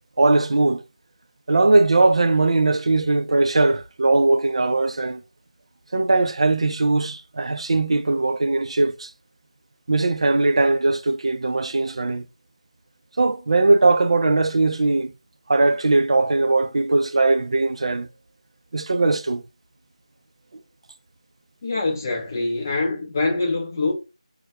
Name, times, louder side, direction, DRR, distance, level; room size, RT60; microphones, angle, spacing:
voice 1, 0.2-0.8 1.5-5.2 5.9-9.1 9.9-12.3 13.2-15.1 15.5-18.1 18.7-19.4, right 2 dB, 55° right, 0.3 m, -19 dB
voice 2, 21.6-23.9, left 3 dB, 25° left, 0.6 m, -24 dB
2.2 x 2.1 x 2.7 m
figure-of-eight pair, 170°, 4 cm